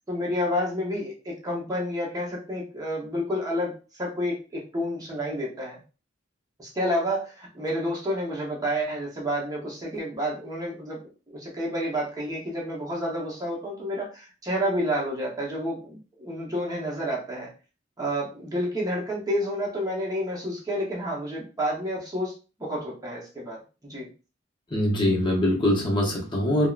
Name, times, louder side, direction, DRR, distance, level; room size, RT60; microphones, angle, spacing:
voice 1, 0.1-5.8 6.6-11.0 11.3-17.5 18.0-22.3 22.6-24.1, equal, 20° right, -3 dB, 0.8 m, -30 dB
voice 2, 24.7-26.7, left 1 dB, 25° left, -1 dB, 0.7 m, -23 dB
3.5 x 2.0 x 2.4 m, 0.34 s
head